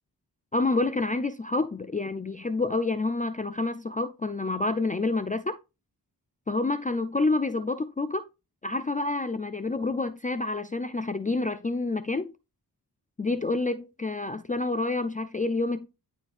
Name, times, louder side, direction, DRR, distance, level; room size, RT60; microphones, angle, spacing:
voice 1, 0.5-5.6 6.5-8.2 8.6-12.3 13.2-15.9, left 3 dB, 20° left, 0.4 m, -28 dB
11.0 x 4.0 x 2.5 m
cardioid pair, 55°, 40 cm